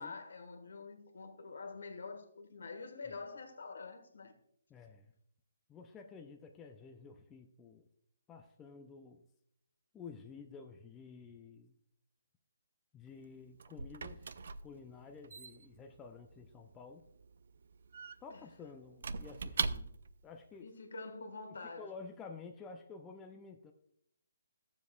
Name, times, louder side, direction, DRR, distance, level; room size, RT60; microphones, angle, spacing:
voice 1, 0.0-4.3 18.3-18.4 20.6-21.9, left 4 dB, 75° left, 1.4 m, -46 dB
voice 2, 4.7-5.1 5.7-7.9 8.3-9.2 9.9-11.8 12.9-14.3 14.6-17.0 18.2-20.7 21.8-23.7, left 5 dB, 10° left, 0.4 m, -51 dB
Squeak / Wood, 13.1-20.2, right 4 dB, 55° right, 0.4 m, -42 dB
14.5 x 7.2 x 2.3 m
hypercardioid pair, 170°, 0 cm